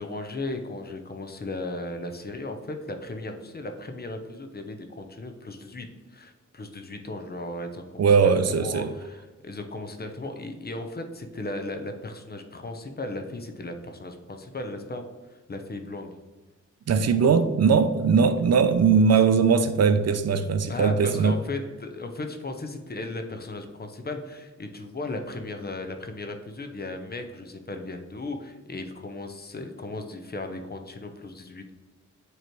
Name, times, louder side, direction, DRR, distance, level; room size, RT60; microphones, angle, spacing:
voice 1, 0.0-16.2 18.2-18.3 20.7-31.7, left 2 dB, 35° left, 5 dB, 0.7 m, -36 dB
voice 2, 8.0-8.9 16.9-21.3, right 5 dB, 60° right, 10 dB, 0.5 m, -20 dB
7.8 x 3.1 x 4.5 m, 1.2 s
wide cardioid pair, 95°, 29 cm